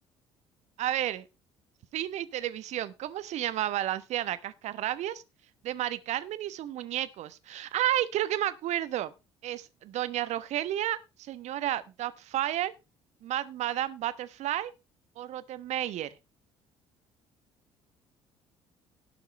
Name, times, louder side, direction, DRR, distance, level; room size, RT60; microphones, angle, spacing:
voice 1, 0.8-1.3 1.9-5.2 5.6-9.1 9.4-12.7 13.2-14.7 15.2-16.1, right 13 dB, 55° right, 1.1 m, -31 dB
17.5 x 6.1 x 4.2 m
figure-of-eight pair, 55°, 14 cm